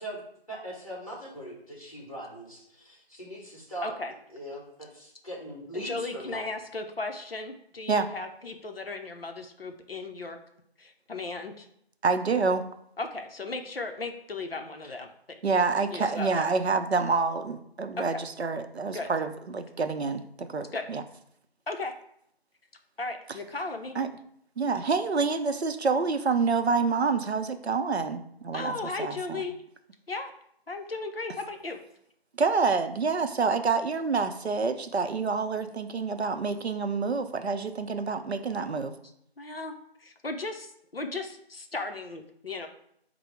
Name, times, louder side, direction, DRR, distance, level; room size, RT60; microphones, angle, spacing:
voice 1, 0.0-3.9 4.3-6.4, right 1 dB, 35° left, -3 dB, 1.2 m, -40 dB
voice 2, 3.8-4.1 5.7-10.4 10.8-11.7 13.0-15.1 15.9-16.5 18.0-18.2 18.9-19.1 20.7-20.8 21.7-21.9 23.0-24.0 28.5-29.5 30.1-30.3 30.7-31.8 39.4-42.7, left 3 dB, 65° left, 5 dB, 0.6 m, -36 dB
voice 3, 12.0-12.7 15.4-21.0 24.0-24.1 24.6-28.7 29.0-29.4 32.4-38.9, right 4 dB, 85° right, 8 dB, 0.6 m, -27 dB
4.4 x 2.0 x 4.5 m, 0.72 s
figure-of-eight pair, 175°, 32 cm